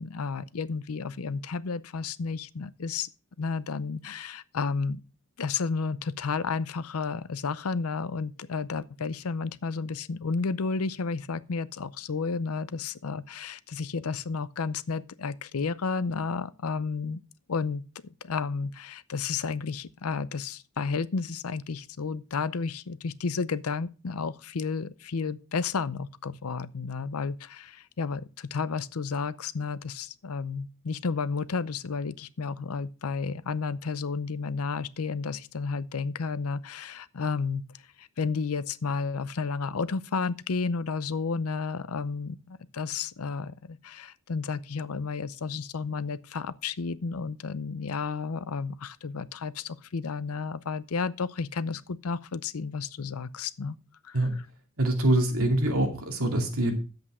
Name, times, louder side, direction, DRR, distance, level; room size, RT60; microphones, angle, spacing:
voice 1, 0.0-3.1 3.4-5.0 5.4-17.2 17.5-17.8 18.2-37.6 38.0-53.8 54.0-54.3, left 4 dB, 85° left, 0.6 m, -32 dB
voice 2, 54.8-56.7, right 1 dB, 85° right, 2.5 m, -24 dB
9.8 x 7.9 x 4.9 m
head